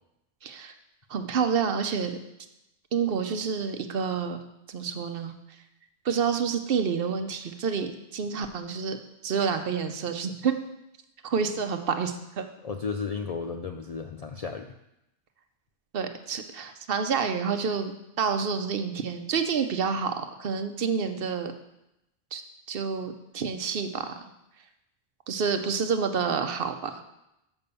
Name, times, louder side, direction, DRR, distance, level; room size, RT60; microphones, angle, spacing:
voice 1, 0.4-0.7 1.1-2.2 2.9-4.4 4.7-5.3 6.0-9.0 9.2-10.6 11.2-12.5 15.9-17.9 18.2-21.5 22.3-22.4 22.7-24.2 25.3-27.0, right 6 dB, 60° right, 8 dB, 0.8 m, -28 dB
voice 2, 12.6-14.7, left 5 dB, 55° left, 5 dB, 0.4 m, -33 dB
6.9 x 5.3 x 6.7 m, 0.88 s
omnidirectional pair, 1.1 m